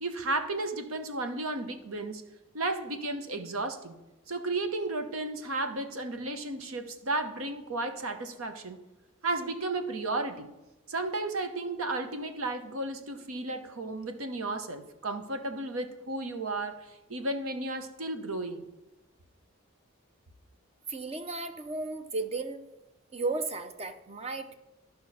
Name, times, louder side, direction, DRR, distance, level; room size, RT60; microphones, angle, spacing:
voice 1, 0.0-2.2 2.5-4.0 4.3-8.8 9.2-10.5 10.9-18.6, right 2 dB, 85° right, 7 dB, 1.0 m, -33 dB
voice 2, 20.9-22.6 23.1-24.5, right 3 dB, 30° right, 8 dB, 0.6 m, -34 dB
13.0 x 5.6 x 4.2 m, 1.0 s
head